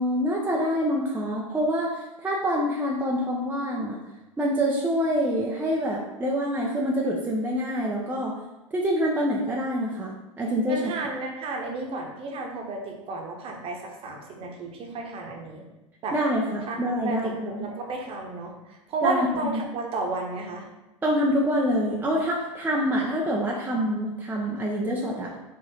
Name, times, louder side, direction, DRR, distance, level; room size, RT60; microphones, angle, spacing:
voice 1, 0.0-4.0 4.4-8.3 8.7-10.8 16.1-17.7 19.0-19.6 21.0-25.3, equal, 10° right, -3 dB, 0.8 m, -26 dB
voice 2, 10.7-15.6 16.0-16.2 16.7-20.7, right 3 dB, 35° right, 1 dB, 1.3 m, -32 dB
4.9 x 3.9 x 5.0 m, 1.0 s
figure-of-eight pair, 85°, 17 cm